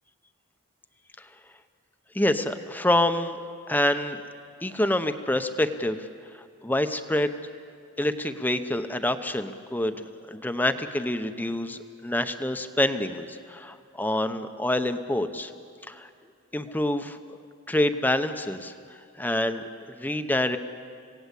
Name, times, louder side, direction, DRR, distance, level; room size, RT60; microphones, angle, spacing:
voice 1, 2.1-3.4 3.7-4.2 4.6-6.1 6.3-7.3 8.0-15.5 15.9-16.1 16.5-17.4 17.7-18.7 19.2-20.6, left 1 dB, 10° left, 8 dB, 0.8 m, -27 dB
27.0 x 18.0 x 8.3 m, 2.4 s
head